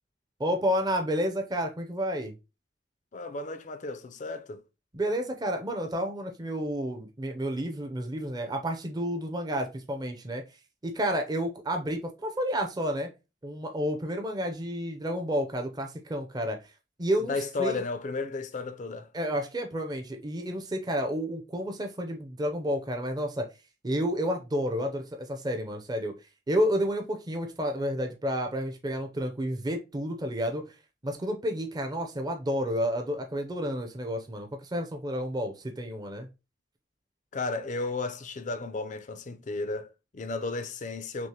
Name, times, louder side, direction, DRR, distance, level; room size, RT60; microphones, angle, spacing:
voice 1, 0.4-2.3 4.9-10.4 10.8-13.1 13.4-16.7 17.0-17.8 19.1-23.5 23.8-30.8 31.0-36.3, equal, 25° right, 0.6 m, -30 dB
voice 2, 3.1-4.6 17.3-19.1 37.3-41.3, left 3 dB, 45° left, 0.5 m, -34 dB
6.0 x 2.1 x 2.8 m
head